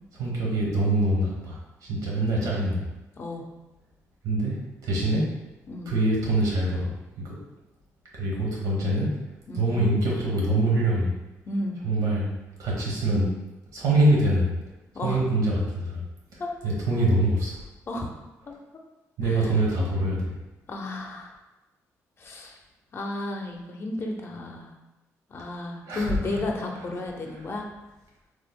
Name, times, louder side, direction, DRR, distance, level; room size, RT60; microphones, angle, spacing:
voice 1, 0.1-2.8 4.2-5.3 5.9-6.9 7.2-7.4 8.1-9.1 9.5-11.1 11.8-12.3 12.6-13.3 13.7-14.5 15.0-16.0 16.3-17.6 19.2-20.3 25.8-26.4, right 1 dB, 85° right, -4 dB, 1.1 m, -24 dB
voice 2, 3.2-3.5 5.7-5.9 9.5-9.8 11.4-11.8 14.9-15.2 16.4-16.5 17.9-18.1 18.5-18.6 19.3-19.5 20.7-21.3 22.2-22.6 22.9-24.7 25.3-27.6, left 2 dB, 45° left, 1 dB, 0.6 m, -33 dB
3.2 x 2.0 x 3.5 m, 1.0 s
cardioid pair, 90°, 6 cm